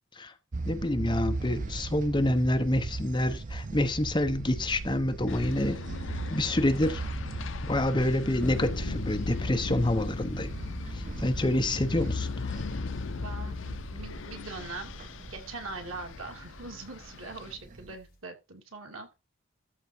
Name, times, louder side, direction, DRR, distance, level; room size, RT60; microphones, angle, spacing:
sound 1, 0.5-17.9, right 3 dB, 40° right, 0.6 m, -39 dB
voice 1, 0.7-5.8 6.3-7.0 7.6-10.5 10.9-12.6, left 1 dB, 20° left, 1.0 m, -27 dB
sound 2, 5.3-17.5, left 4 dB, 65° left, 0.5 m, -38 dB
sound 3, 8.4-18.1, equal, 45° left, 2.9 m, -42 dB
voice 2, 8.9-9.2 13.1-14.9 15.3-19.1, right 3 dB, 85° right, 2.7 m, -42 dB
13.5 x 4.7 x 4.5 m
head